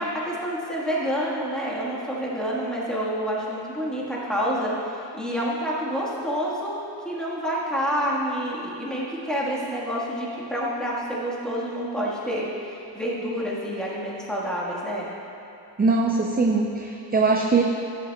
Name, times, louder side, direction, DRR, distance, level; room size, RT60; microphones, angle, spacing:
voice 1, 0.0-6.8 7.0-15.1, equal, ahead, -6 dB, 1.5 m, -28 dB
voice 2, 15.8-17.6, right 3 dB, 25° right, 1 dB, 0.4 m, -21 dB
11.5 x 8.4 x 2.3 m, 2.8 s
wide cardioid pair, 125°, 43 cm